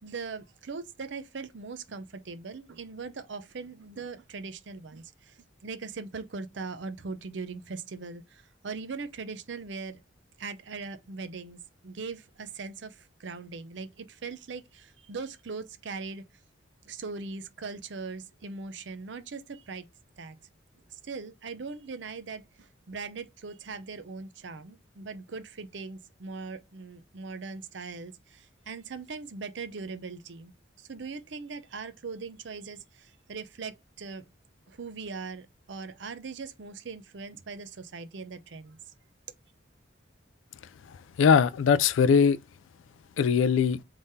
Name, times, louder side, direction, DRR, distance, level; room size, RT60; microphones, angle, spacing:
voice 1, 0.0-10.0 10.4-16.3 16.9-19.9 20.2-20.4 20.9-30.5 30.8-34.2 34.7-38.8, right 4 dB, 70° right, 0.6 m, -40 dB
voice 2, 40.9-42.4 43.2-43.8, left 6 dB, 80° left, 0.3 m, -21 dB
3.7 x 3.4 x 2.7 m
head